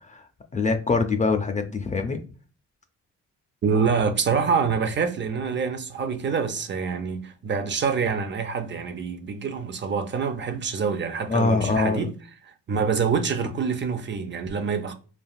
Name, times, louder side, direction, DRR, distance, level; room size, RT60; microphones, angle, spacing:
voice 1, 0.5-2.2 11.3-12.1, left 4 dB, 25° left, 0.4 m, -24 dB
voice 2, 3.6-12.1 12.7-14.9, right 5 dB, 40° right, 0.5 m, -26 dB
3.4 x 2.3 x 2.3 m
cardioid pair, 90°, 30 cm